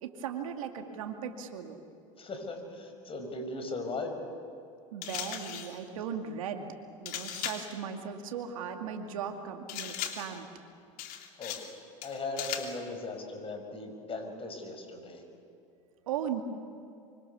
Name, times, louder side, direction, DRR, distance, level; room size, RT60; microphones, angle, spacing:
voice 1, 0.0-1.8 4.9-6.6 7.0-10.5 16.1-16.4, right 8 dB, 80° right, 5 dB, 2.4 m, -37 dB
voice 2, 2.2-4.1 11.4-11.6 12.0-15.2, left 2 dB, 35° left, 5 dB, 5.9 m, -38 dB
sound 1, 5.0-5.8 7.0-7.7 9.7-10.4 11.0-11.7 12.0-12.8, left 10 dB, 60° left, 2.8 m, -38 dB
25.0 x 25.0 x 7.1 m, 2.6 s
hypercardioid pair, 85°, 17 cm